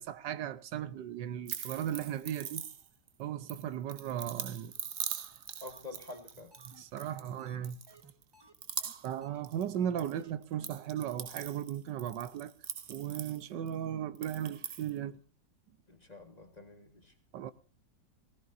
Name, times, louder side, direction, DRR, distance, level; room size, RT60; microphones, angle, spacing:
voice 1, 0.0-2.6 3.2-4.7 6.6-7.8 9.0-12.5 12.9-15.2 17.3-17.5, right 10 dB, 80° right, 1.5 m, -36 dB
sound 1, 1.4-3.1 3.5-7.3 7.6-8.2 8.5-10.1 10.4-13.7 14.1-14.9, right 8 dB, 50° right, 1.0 m, -42 dB
voice 2, 5.6-6.5 15.9-17.1, left 3 dB, 25° left, 1.6 m, -48 dB
sound 2, 5.7-5.8 6.1-6.2 6.5-8.5 8.8-8.9 9.2-9.4 9.7-9.8 10.1-10.3 10.6-10.7 11.0-11.2 11.5-11.6 11.9-12.0, right 2 dB, 15° right, 1.3 m, -58 dB
19.0 x 17.5 x 2.6 m
omnidirectional pair, 1.9 m